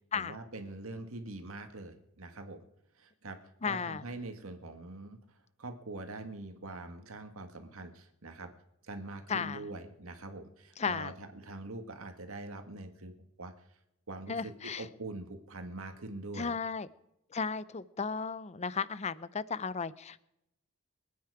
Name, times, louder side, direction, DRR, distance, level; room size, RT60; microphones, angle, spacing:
voice 1, 0.1-2.7 3.0-3.4 3.7-8.5 8.8-13.5 14.1-16.6, right 2 dB, 80° right, 6 dB, 1.8 m, -44 dB
voice 2, 3.6-4.0 9.3-9.6 10.8-11.1 14.3-14.8 16.4-16.9 17.3-20.2, left 5 dB, 30° left, 17 dB, 0.6 m, -34 dB
25.0 x 9.4 x 4.9 m, 0.82 s
head